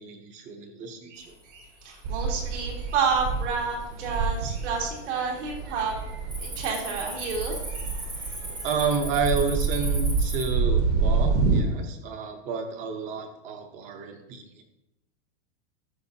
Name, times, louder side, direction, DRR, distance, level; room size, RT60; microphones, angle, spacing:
voice 1, 0.0-1.3 8.6-14.6, right 5 dB, 20° right, 6 dB, 0.7 m, -30 dB
voice 2, 1.1-5.9 6.4-8.7, right 5 dB, 80° right, -3 dB, 3.2 m, -30 dB
Cricket, 1.5-1.9 2.4-2.8 3.4-3.5 4.1-4.7 5.0-5.3 5.6-10.5, right 1 dB, 5° right, 0.3 m, -38 dB
sound 1, 2.0-11.6, right 4 dB, 55° right, 1.4 m, -27 dB
11.0 x 6.2 x 2.8 m, 0.89 s
supercardioid pair, 170°, 35 cm